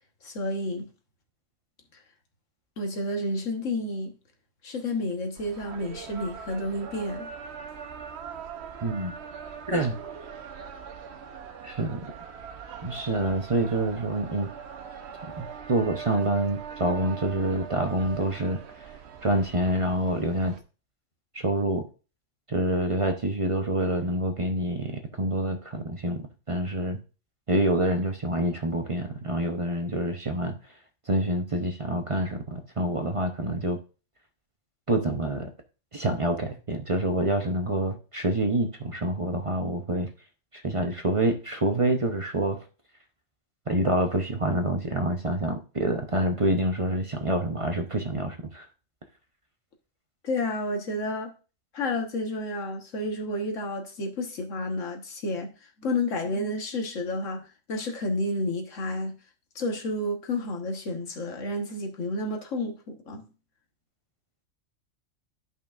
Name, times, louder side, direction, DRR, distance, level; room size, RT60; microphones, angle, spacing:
voice 1, 0.2-0.9 2.8-4.1 4.6-7.3 50.2-51.3 51.7-55.5 55.8-57.4 57.7-59.1 59.5-63.3, left 1 dB, 90° left, 1.7 m, -30 dB
sound 1, 5.4-20.6, right 7 dB, 65° right, 1.0 m, -41 dB
voice 2, 8.8-9.1 9.7-10.0 11.6-12.0 12.8-14.5 15.4-18.9 19.2-20.6 21.3-21.9 22.5-27.0 27.5-30.6 31.1-33.8 34.9-35.5 35.9-40.1 40.5-42.6 43.7-48.7, right 1 dB, 30° right, 0.8 m, -27 dB
13.0 x 5.4 x 2.4 m
omnidirectional pair, 1.3 m